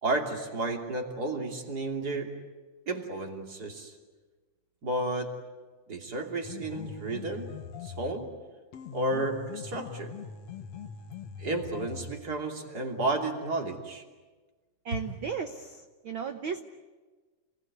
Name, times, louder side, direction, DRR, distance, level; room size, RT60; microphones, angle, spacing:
voice 1, 0.0-2.3 2.9-3.9 4.8-5.4 5.9-7.5 7.8-8.3 8.9-10.1 11.4-14.0, right 2 dB, 30° right, 2 dB, 3.1 m, -32 dB
sound 1, 6.4-8.2 8.7-12.2, left 6 dB, 60° left, 2.4 m, -42 dB
voice 2, 14.8-16.6, right 6 dB, 75° right, 7 dB, 1.1 m, -35 dB
29.0 x 21.0 x 9.5 m, 1.3 s
omnidirectional pair, 3.7 m